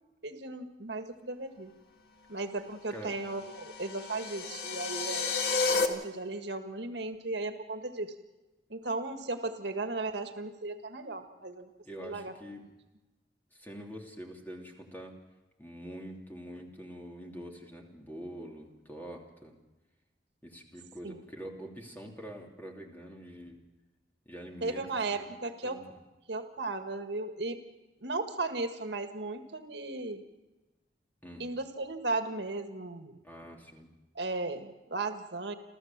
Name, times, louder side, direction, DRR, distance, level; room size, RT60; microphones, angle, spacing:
voice 1, 0.2-1.7 2.3-5.4 5.7-8.1 8.7-11.7 12.0-12.3 21.0-21.2 24.6-25.8 26.3-27.6 28.0-30.2 31.4-33.2 34.2-35.5, right 3 dB, 80° right, 7 dB, 1.7 m, -36 dB
sound 1, 3.3-5.9, left 4 dB, 65° left, 1.7 m, -31 dB
voice 2, 11.8-12.6 13.5-15.2 15.6-19.6 20.4-23.6 24.2-24.8 25.1-25.3 25.6-26.0 31.2-31.5 33.2-33.9, equal, 10° left, 1 dB, 2.9 m, -45 dB
29.0 x 13.5 x 7.4 m, 1.1 s
head